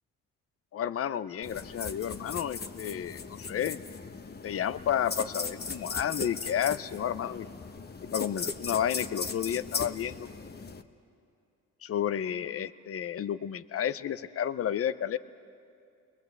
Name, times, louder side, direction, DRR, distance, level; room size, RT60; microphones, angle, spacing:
voice 1, 0.7-3.8 4.4-7.5 8.0-10.3 11.8-15.2, left 9 dB, 50° left, 14 dB, 0.8 m, -31 dB
sound 1, 1.4-10.8, left 4 dB, 35° left, 1.2 m, -38 dB
30.0 x 21.5 x 8.1 m, 2.5 s
cardioid pair, 90°, 30 cm